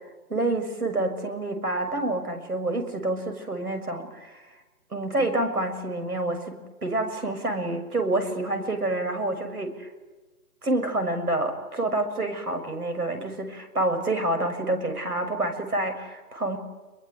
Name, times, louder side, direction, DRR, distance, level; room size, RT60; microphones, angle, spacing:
voice 1, 0.3-4.4 4.9-9.9 10.6-16.6, right 2 dB, 80° right, 7 dB, 6.7 m, -28 dB
27.0 x 22.0 x 9.6 m, 1.2 s
figure-of-eight pair, 140°, 45 cm